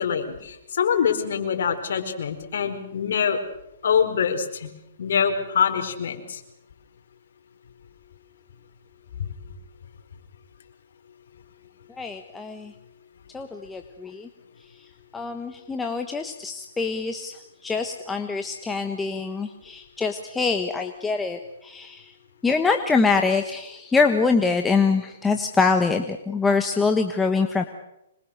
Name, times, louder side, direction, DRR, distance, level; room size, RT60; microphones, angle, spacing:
voice 1, 0.0-3.4 3.8-4.7 5.0-6.4 9.2-9.3, left 7 dB, 70° left, 5 dB, 4.7 m, -24 dB
voice 2, 12.0-12.7 13.3-14.3 15.1-17.3 17.6-22.0 22.4-27.6, left 4 dB, 10° left, 5 dB, 1.3 m, -24 dB
26.0 x 22.0 x 6.6 m, 0.84 s
hypercardioid pair, 150°, 0 cm